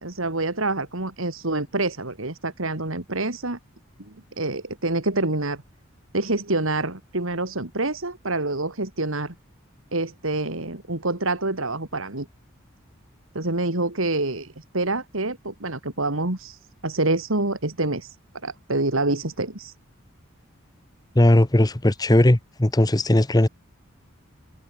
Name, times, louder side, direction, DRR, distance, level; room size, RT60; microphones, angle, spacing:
voice 1, 0.0-3.6 4.0-5.6 6.1-9.3 9.9-12.3 13.3-18.2 18.4-19.7, right 2 dB, 70° right, 2.8 m, -27 dB
voice 2, 21.1-23.5, left 1 dB, 20° left, 0.9 m, -18 dB
head